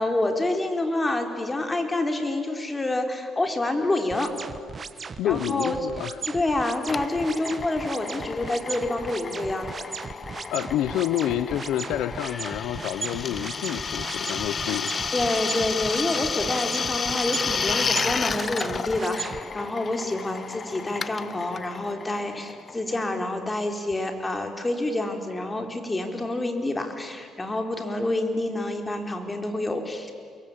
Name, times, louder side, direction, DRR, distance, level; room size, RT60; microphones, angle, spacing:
voice 1, 0.0-4.3 5.0-5.8 6.3-9.9 15.1-30.1, left 2 dB, 20° left, 5 dB, 4.0 m, -28 dB
sound 1, 4.1-19.4, right 5 dB, 40° right, 1.5 m, -37 dB
voice 2, 5.2-6.2 10.5-14.9, left 12 dB, 80° left, 13 dB, 0.9 m, -28 dB
Drill, 6.9-23.2, left 5 dB, 40° left, 0.8 m, -32 dB
29.0 x 23.0 x 8.7 m, 2.2 s
cardioid pair, 85°, 0 cm